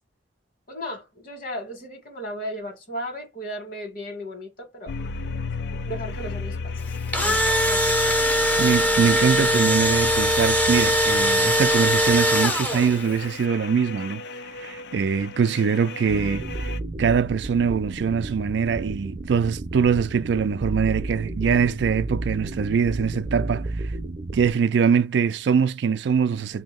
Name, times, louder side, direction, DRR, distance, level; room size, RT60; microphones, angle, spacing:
voice 1, 0.7-4.9 5.8-8.2 8.5-8.7, equal, 50° left, 1.6 m, -36 dB
sound 1, 4.9-16.8, left 4 dB, 65° left, 0.4 m, -34 dB
Engine / Drill, 6.9-13.1, equal, 10° left, 0.6 m, -21 dB
voice 2, 8.6-14.2 14.6-16.7 17.0-23.7 24.3-26.6, right 6 dB, 75° right, 0.3 m, -23 dB
sound 2, 16.1-24.5, right 2 dB, 40° right, 0.6 m, -32 dB
2.8 x 2.7 x 3.7 m
head